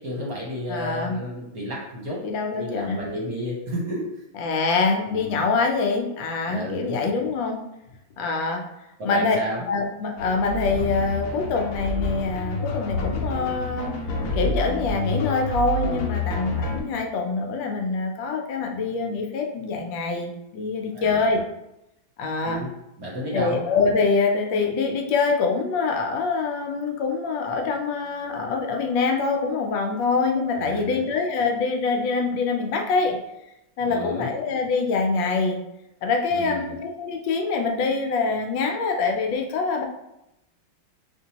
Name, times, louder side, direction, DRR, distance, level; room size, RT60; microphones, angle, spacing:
voice 1, 0.0-2.2 2.5-4.2 5.1-5.4 6.5-7.0 9.0-9.6 20.9-21.3 22.4-22.7 23.0-23.7 30.5-31.0 33.8-34.3 36.3-36.7, equal, 55° right, -4 dB, 1.1 m, -32 dB
voice 2, 0.7-1.2 2.2-3.0 4.4-7.6 8.2-8.6 9.0-9.4 9.7-14.0 14.3-21.4 22.2-22.6 23.3-33.2 33.8-35.6 36.0-39.8, left 4 dB, 75° left, 3 dB, 1.2 m, -25 dB
sound 1, 10.2-16.8, left 1 dB, 60° left, 1.0 m, -28 dB
5.2 x 2.8 x 2.8 m, 0.89 s
omnidirectional pair, 2.2 m